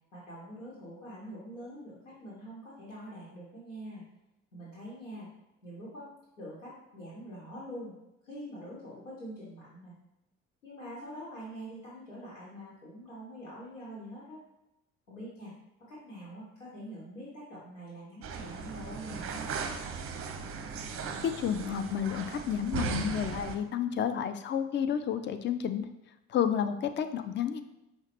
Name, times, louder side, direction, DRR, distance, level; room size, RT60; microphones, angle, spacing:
voice 1, 0.1-4.0 4.5-5.3 5.6-6.1 6.4-8.0 8.2-9.9 10.6-14.4 15.1-15.5 15.9-19.7, equal, 90° left, -7 dB, 1.1 m, -44 dB
sound 1, 18.2-23.6, right 5 dB, 35° right, 0.6 m, -37 dB
voice 2, 21.2-25.9 26.3-27.6, left 8 dB, 30° left, 10 dB, 0.4 m, -31 dB
5.6 x 2.2 x 4.3 m, 0.91 s
figure-of-eight pair, 50°, 37 cm